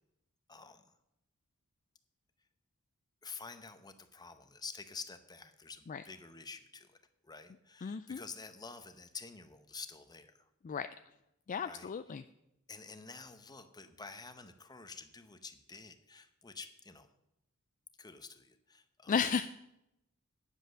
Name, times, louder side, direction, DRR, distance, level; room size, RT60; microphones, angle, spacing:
voice 1, 0.5-0.8 3.2-7.0 7.2-10.4 11.6-11.9 12.7-17.1 18.0-19.2, left 4 dB, 20° left, 10 dB, 0.8 m, -49 dB
voice 2, 7.8-8.2 10.6-10.9 11.5-12.2 19.1-19.5, left 6 dB, 35° left, 11 dB, 0.3 m, -34 dB
9.9 x 8.0 x 6.3 m, 0.85 s
head